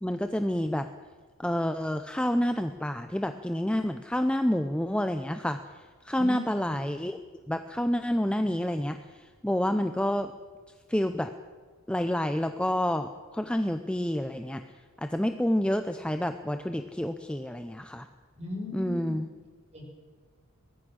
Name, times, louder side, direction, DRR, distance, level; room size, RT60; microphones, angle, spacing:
voice 1, 0.0-0.9 1.4-5.6 6.0-7.2 7.5-10.3 10.9-11.3 11.9-14.6 15.0-18.1 18.7-19.3, left 1 dB, 5° left, 8 dB, 0.6 m, -28 dB
voice 2, 6.2-6.7 18.4-19.1 19.7-19.8, left 1 dB, 30° right, 1 dB, 5.7 m, -37 dB
23.0 x 19.0 x 6.4 m, 1.4 s
head